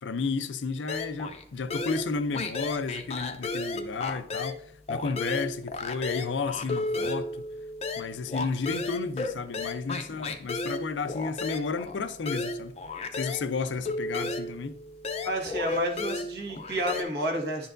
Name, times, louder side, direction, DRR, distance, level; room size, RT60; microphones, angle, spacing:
voice 1, 0.0-7.5 8.0-12.7 13.1-14.8, left 4 dB, 80° left, 0.5 m, -32 dB
sound 1, 0.9-1.4 1.7-4.6 4.9-13.5 13.8-17.0, left 3 dB, 35° left, 0.5 m, -33 dB
voice 2, 15.2-17.7, right 1 dB, 60° right, 1.5 m, -30 dB
10.5 x 4.4 x 2.5 m
head